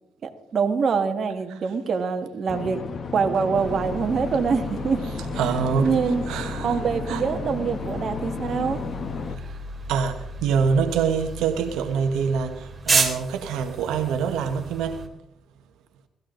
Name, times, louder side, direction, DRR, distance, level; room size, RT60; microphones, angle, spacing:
voice 1, 0.2-2.8 3.1-5.1 5.8-6.2 6.6-8.8 9.4-9.5, right 5 dB, 55° right, 1.8 m, -25 dB
sound 1, 2.5-9.4, left 4 dB, 45° left, 1.4 m, -33 dB
sound 2, 3.5-15.1, right 3 dB, 30° right, 3.1 m, -33 dB
voice 2, 5.3-6.0 6.3-6.8 7.1-7.2 9.9-15.1, right 6 dB, 90° right, 1.3 m, -25 dB
18.5 x 14.5 x 3.9 m
cardioid pair, 90°, 0 cm